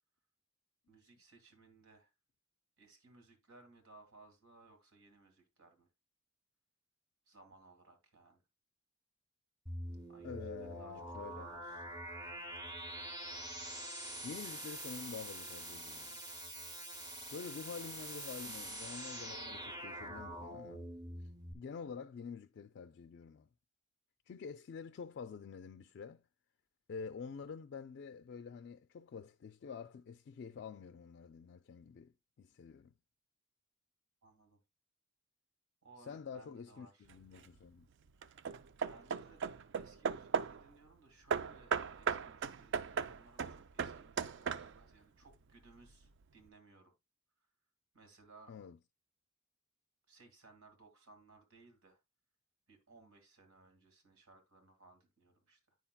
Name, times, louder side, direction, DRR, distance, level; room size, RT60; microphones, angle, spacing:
voice 1, 0.9-2.1 2.8-5.9 7.3-8.4 10.1-11.9 34.2-34.6 35.8-37.1 38.8-39.4 39.7-46.9 47.9-48.5 50.1-52.0 52.7-55.8, right 3 dB, 90° right, 2.2 m, -62 dB
sound 1, 9.7-21.5, right 1 dB, 20° right, 0.9 m, -45 dB
voice 2, 10.2-11.5 14.2-16.2 17.3-20.9 21.2-21.3 21.5-23.5 24.3-26.2 26.9-32.9 36.0-37.9 48.5-48.8, left 6 dB, 55° left, 0.3 m, -48 dB
Hammer / Wood, 37.1-37.6 38.2-40.7 41.3-45.0, right 6 dB, 60° right, 0.4 m, -37 dB
9.3 x 5.7 x 2.2 m
head